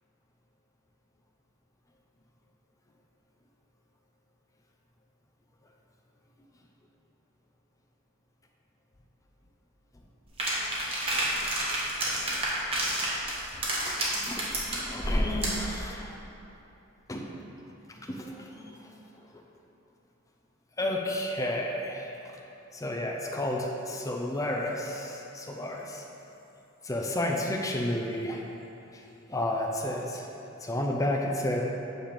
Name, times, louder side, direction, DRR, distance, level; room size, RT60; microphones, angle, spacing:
sound 1, 10.4-15.7, right 1 dB, 30° right, 1.3 m, -29 dB
voice 1, 13.8-16.2 17.1-17.2 17.9-18.9 20.8-22.2 22.7-26.0 26.8-28.4 28.9-30.3 30.6-31.6, left 1 dB, 15° left, 0 dB, 0.5 m, -32 dB
8.8 x 3.3 x 6.6 m, 2.9 s
head